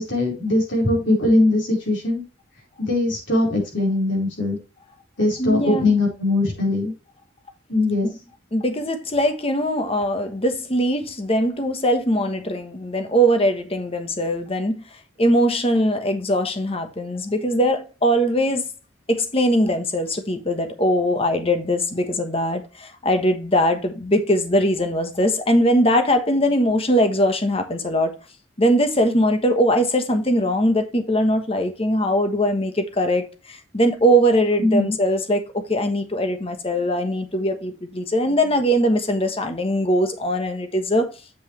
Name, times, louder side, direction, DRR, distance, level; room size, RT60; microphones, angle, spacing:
voice 1, 0.0-2.2 2.8-4.6 5.2-6.9 7.7-8.1 34.6-34.9, left 2 dB, 70° left, 4.5 m, -20 dB
voice 2, 5.4-5.9 8.0-8.1 8.5-14.8 15.2-18.7 19.1-28.1 28.6-41.1, equal, 30° left, 1.2 m, -21 dB
8.1 x 6.5 x 3.2 m
head